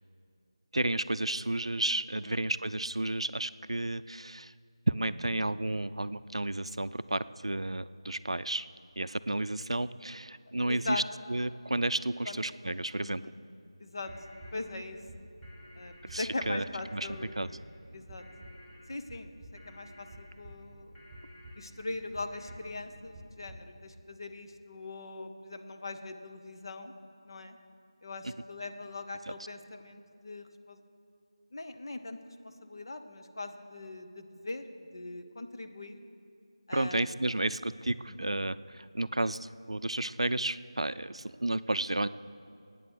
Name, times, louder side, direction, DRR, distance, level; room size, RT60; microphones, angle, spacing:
voice 1, 0.7-4.5 4.9-8.7 9.0-11.0 11.3-13.2 16.1-16.6 16.9-17.1 17.4-17.5 36.7-42.1, right 1 dB, 80° right, 15 dB, 0.5 m, -32 dB
voice 2, 10.7-11.0 12.3-12.4 13.0-13.3 13.8-14.1 14.5-15.0 15.8-17.3 17.9-18.2 18.9-20.9 21.6-26.9 27.2-27.6 28.0-30.8 31.5-32.2 32.4-36.0 36.7-37.1 38.1-38.2, left 2 dB, 50° left, 7 dB, 1.1 m, -41 dB
sound 1, 14.0-22.6, left 1 dB, 10° left, 0.9 m, -57 dB
sound 2, 14.0-23.6, right 1 dB, 10° right, 1.3 m, -51 dB
17.5 x 9.1 x 6.4 m, 2.5 s
figure-of-eight pair, 165°, 3 cm